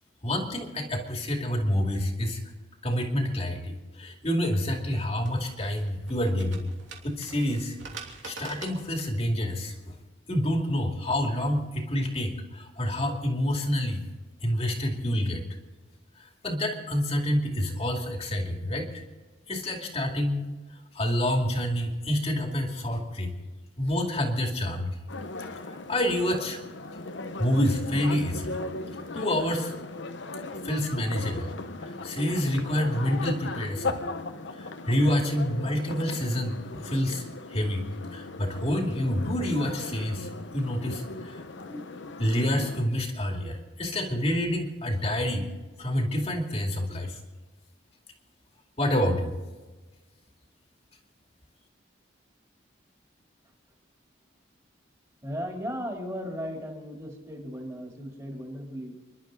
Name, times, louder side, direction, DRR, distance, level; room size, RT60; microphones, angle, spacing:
voice 1, 0.2-2.4 2.8-6.7 7.0-7.8 8.2-9.9 10.3-14.0 14.4-15.4 16.2-19.0 19.5-20.5 20.9-23.3 23.8-24.9 25.7-26.6 27.4-28.6 29.1-29.7 30.6-31.5 31.8-34.0 34.5-37.2 37.5-37.8 38.1-41.4 41.7-41.8 42.2-45.5 45.8-47.2 48.8-49.3, equal, 30° left, 2 dB, 2.4 m, -28 dB
sound 1, 4.6-10.0, right 4 dB, 75° right, 3.0 m, -45 dB
sound 2, 25.1-42.9, left 3 dB, 70° left, 1.0 m, -37 dB
voice 2, 55.2-58.9, equal, 20° right, 0 dB, 3.4 m, -36 dB
30.0 x 11.5 x 4.0 m, 1.3 s
head